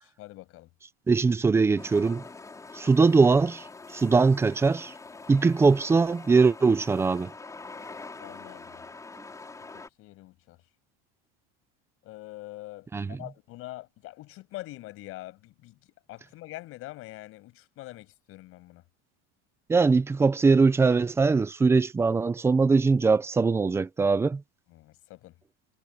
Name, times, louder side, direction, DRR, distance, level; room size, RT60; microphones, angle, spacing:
voice 1, 0.2-0.7 8.2-8.8 9.7-10.6 12.0-15.8 16.1-18.8 24.7-25.4, left 18 dB, 40° left, 6.9 m, -44 dB
voice 2, 1.1-2.2 2.7-3.7 3.9-4.9 5.3-7.3 12.9-13.2 19.7-24.4, right 4 dB, 10° right, 0.5 m, -21 dB
sound 1, 1.8-9.9, left 3 dB, 10° left, 4.8 m, -45 dB
cardioid pair, 170°, 33 cm